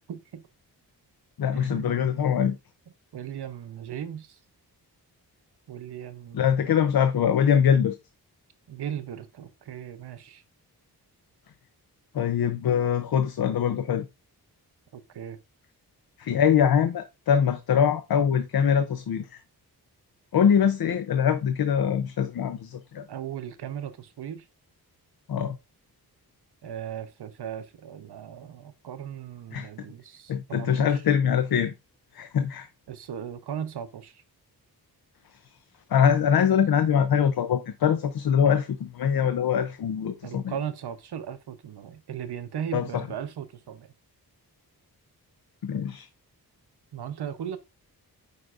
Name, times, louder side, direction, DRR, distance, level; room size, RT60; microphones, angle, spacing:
voice 1, 0.1-0.4 1.5-2.0 3.1-4.4 5.7-6.7 8.7-10.4 14.9-15.4 23.1-24.5 26.6-31.0 32.9-34.2 40.2-43.9 46.9-47.6, right 9 dB, 85° right, 0.9 m, -37 dB
voice 2, 1.4-2.6 6.3-8.0 12.1-14.1 16.2-19.4 20.3-23.1 25.3-25.6 29.5-29.7 30.3-31.7 32.1-32.7 35.9-40.5 42.7-43.0 45.6-46.1, left 8 dB, 65° left, 0.6 m, -23 dB
7.9 x 5.2 x 2.5 m
wide cardioid pair, 125°, 39 cm